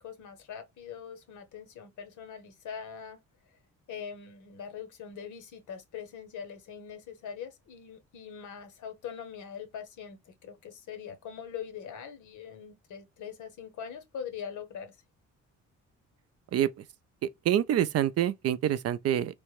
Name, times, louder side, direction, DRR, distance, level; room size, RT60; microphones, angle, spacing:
voice 1, 0.0-3.2 3.9-15.0, left 7 dB, 75° left, 1.0 m, -42 dB
voice 2, 16.5-16.8 17.2-19.3, right 11 dB, 55° right, 0.4 m, -27 dB
3.3 x 2.1 x 3.1 m
cardioid pair, 90°, 30 cm